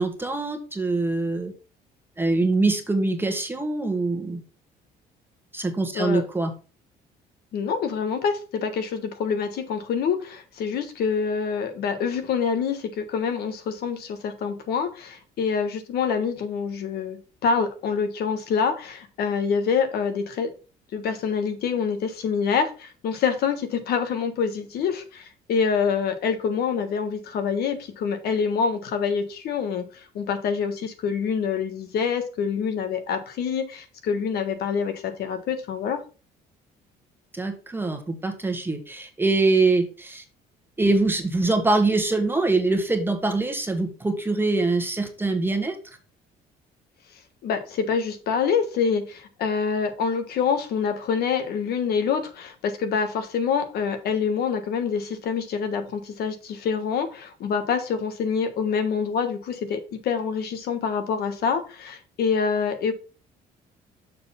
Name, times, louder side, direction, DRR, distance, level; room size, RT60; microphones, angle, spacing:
voice 1, 0.0-1.5 2.2-4.4 5.5-6.5 37.3-40.2 40.8-45.8, right 3 dB, 10° right, 4 dB, 1.4 m, -24 dB
voice 2, 7.5-20.5 20.9-36.0 47.4-62.9, left 6 dB, 70° left, 8 dB, 1.4 m, -26 dB
6.7 x 3.9 x 5.8 m, 0.35 s
cardioid pair, 110°, 17 cm